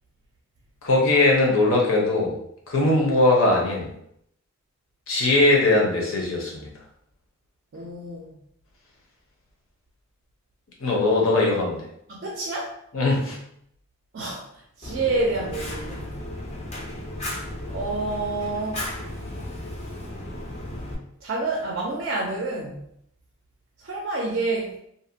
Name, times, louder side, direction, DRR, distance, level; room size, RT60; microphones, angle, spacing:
voice 1, 0.8-2.3 2.7-3.9 5.1-6.7 10.8-11.8 12.9-13.4, left 2 dB, 70° left, -2 dB, 0.7 m, -20 dB
voice 2, 7.7-8.3 12.1-12.7 14.1-14.5 14.8-16.1 17.7-18.8 21.2-22.8 23.8-24.8, right 2 dB, 50° right, -1 dB, 0.4 m, -28 dB
Fire, 14.8-20.9, left 1 dB, 30° left, 0.4 m, -34 dB
2.6 x 2.1 x 2.6 m, 0.72 s
head